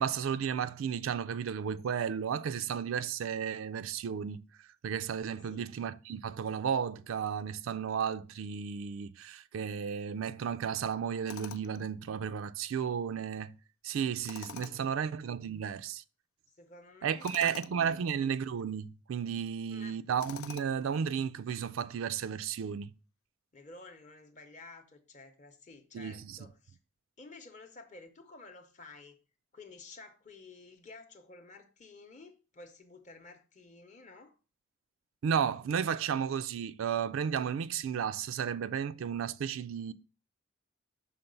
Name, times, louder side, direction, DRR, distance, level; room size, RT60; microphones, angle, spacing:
voice 1, 0.0-4.4 4.8-13.5 13.8-16.0 17.0-22.9 25.9-26.4 35.2-39.9, right 7 dB, 75° right, 0.3 m, -33 dB
Tools, 11.3-11.8 14.2-14.9 17.2-17.8 20.2-20.9, left 9 dB, 85° left, 0.3 m, -46 dB
voice 2, 14.6-15.0 16.5-18.1 19.7-20.0 23.5-26.8 27.2-29.2 29.5-34.4, left 3 dB, 35° left, 0.7 m, -52 dB
5.8 x 3.7 x 5.2 m
head